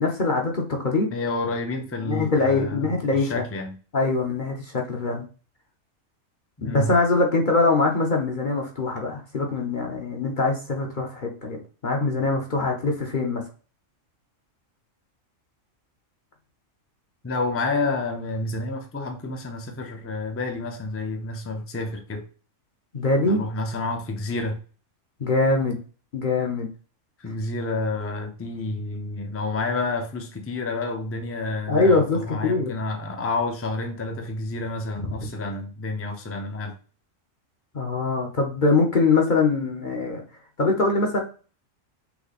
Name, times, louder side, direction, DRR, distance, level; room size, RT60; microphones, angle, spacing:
voice 1, 0.0-1.1 2.0-3.4 3.9-5.2 6.6-11.6 11.8-13.4 22.9-23.4 25.2-25.8 26.1-26.7 31.7-32.7 35.0-35.3 37.7-40.2 40.6-41.2, left 3 dB, 45° left, 0.9 m, -23 dB
voice 2, 1.1-3.8 6.6-6.9 17.2-22.2 23.3-24.6 27.2-36.7, left 3 dB, 15° left, 0.5 m, -29 dB
5.8 x 2.2 x 4.0 m
omnidirectional pair, 1.4 m